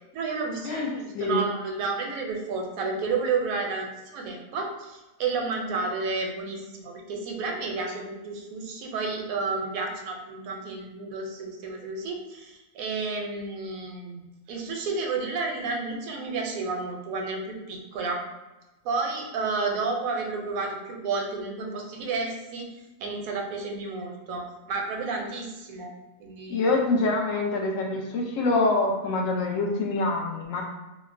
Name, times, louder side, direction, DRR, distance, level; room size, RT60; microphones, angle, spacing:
voice 1, 0.1-18.2 18.8-22.7 23.0-25.9 26.2-26.6, right 4 dB, 85° right, 1 dB, 1.0 m, -31 dB
voice 2, 26.5-30.6, left 2 dB, 75° left, 1 dB, 1.0 m, -25 dB
4.1 x 2.0 x 2.5 m, 1.1 s
omnidirectional pair, 1.4 m